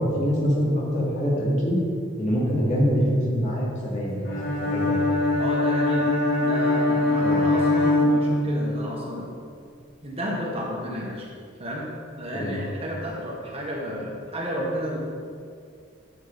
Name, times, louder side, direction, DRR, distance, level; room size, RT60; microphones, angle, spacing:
voice 1, 0.0-1.8 2.2-4.3 4.6-5.0 7.2-7.4 12.3-12.5, equal, 35° left, -6 dB, 2.6 m, -24 dB
Bowed string instrument, 4.2-8.8, left 2 dB, 55° left, 2.5 m, -22 dB
voice 2, 5.4-6.1 6.4-9.3 10.0-11.3 11.6-15.0, equal, 30° right, -3 dB, 1.5 m, -32 dB
11.5 x 7.3 x 4.1 m, 2.3 s
head